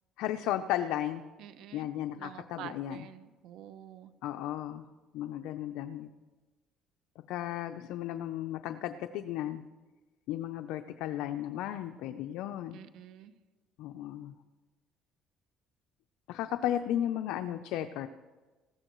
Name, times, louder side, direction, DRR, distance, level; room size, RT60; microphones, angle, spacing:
voice 1, 0.2-1.2 1.7-3.1 4.2-4.8 5.1-6.1 7.3-9.6 10.3-12.8 13.8-14.3 16.3-18.1, left 12 dB, 80° left, 7 dB, 0.5 m, -34 dB
voice 2, 1.4-4.1 12.7-13.3, right 11 dB, 70° right, 12 dB, 0.8 m, -48 dB
19.0 x 15.0 x 3.1 m, 1.3 s
cardioid pair, 110°, 0 cm